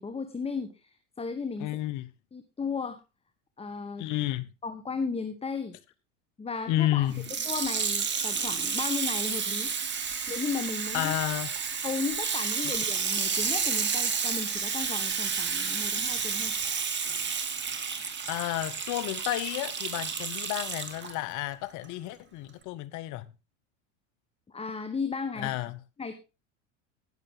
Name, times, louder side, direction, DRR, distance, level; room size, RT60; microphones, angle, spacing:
voice 1, 0.0-1.7 2.3-3.0 3.6-4.2 4.6-5.7 6.4-7.2 7.4-9.7 10.3-11.1 11.8-16.5 24.5-25.5 26.0-26.1, left 4 dB, 15° left, 1.2 m, -35 dB
voice 2, 1.6-2.1 4.0-4.5 6.7-7.2 10.9-11.5 18.3-23.2 25.4-25.8, left 15 dB, 50° left, 0.9 m, -31 dB
Water tap faucet / Sink (filling or washing), 7.1-21.1 21.8-21.9, right 6 dB, 30° right, 1.9 m, -31 dB
19.0 x 6.8 x 3.7 m
hypercardioid pair, 95°, 38 cm